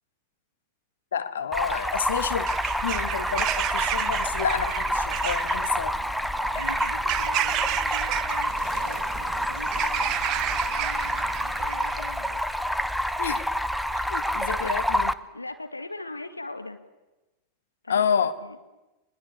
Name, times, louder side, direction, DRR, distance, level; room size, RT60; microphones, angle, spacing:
voice 1, 1.1-2.5 2.8-5.9 13.2-13.5 13.9-15.1 17.9-18.3, left 7 dB, 65° left, 1.6 m, -29 dB
Stream, 1.5-15.1, equal, ahead, 0.9 m, -28 dB
Bird vocalization bird call bird song / Crow, 2.3-12.2, right 14 dB, 40° right, 0.9 m, -32 dB
voice 2, 6.5-12.6 13.0-13.2 14.3-14.9 15.3-16.8 17.8-18.6, left 2 dB, 85° left, 2.1 m, -41 dB
23.0 x 21.0 x 8.4 m
figure-of-eight pair, 90°, 0 cm